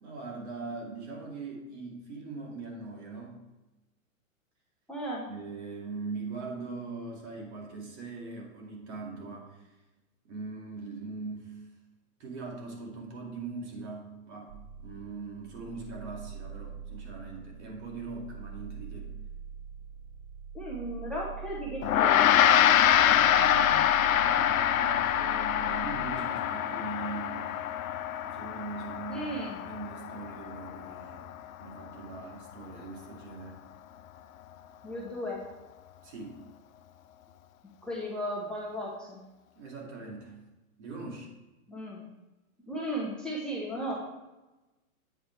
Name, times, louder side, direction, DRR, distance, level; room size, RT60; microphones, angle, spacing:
voice 1, 0.0-3.4 5.2-9.7 10.2-11.6 12.2-19.1 23.1-27.7 28.2-31.3 31.6-33.6 36.0-36.4 39.6-40.4 40.8-41.3, right 3 dB, 50° right, 0 dB, 2.4 m, -41 dB
voice 2, 4.9-5.3 20.5-22.3 29.1-29.6 34.8-35.4 37.8-39.2 41.7-42.0 42.7-43.9, equal, ahead, -4 dB, 0.8 m, -35 dB
sound 1, 14.5-26.2, right 6 dB, 25° right, 0.6 m, -44 dB
Gong, 21.8-31.4, left 10 dB, 70° left, 0.6 m, -25 dB
8.3 x 5.1 x 4.4 m, 1.1 s
hypercardioid pair, 135°, 42 cm